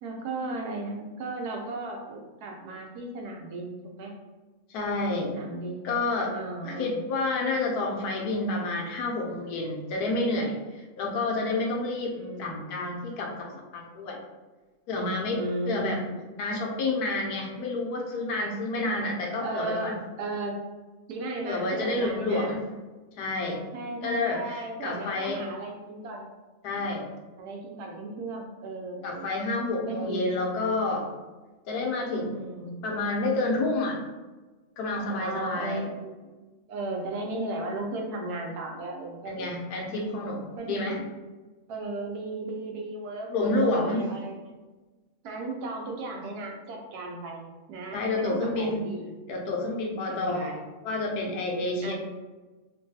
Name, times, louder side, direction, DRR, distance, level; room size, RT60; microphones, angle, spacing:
voice 1, 0.0-4.1 5.3-6.0 6.3-7.0 12.1-12.7 15.3-16.2 19.4-20.6 21.1-22.5 23.7-26.3 27.4-29.4 29.9-30.6 32.2-32.8 35.2-36.3 36.7-39.7 40.6-41.1 41.7-44.4 45.2-49.1 50.1-50.7 51.8-51.9, right 2 dB, 80° right, 1 dB, 1.1 m, -35 dB
voice 2, 4.7-5.3 5.8-6.3 6.6-13.5 13.7-14.2 14.9-16.0 16.4-20.0 21.4-22.6 23.2-23.6 24.0-25.4 26.6-27.1 29.0-31.1 31.7-32.4 32.8-34.0 34.8-35.8 39.3-41.0 43.3-44.1 47.9-48.9 49.3-50.6 50.8-51.9, left 2 dB, 80° left, 0 dB, 1.1 m, -29 dB
3.1 x 2.2 x 2.6 m, 1.2 s
omnidirectional pair, 1.6 m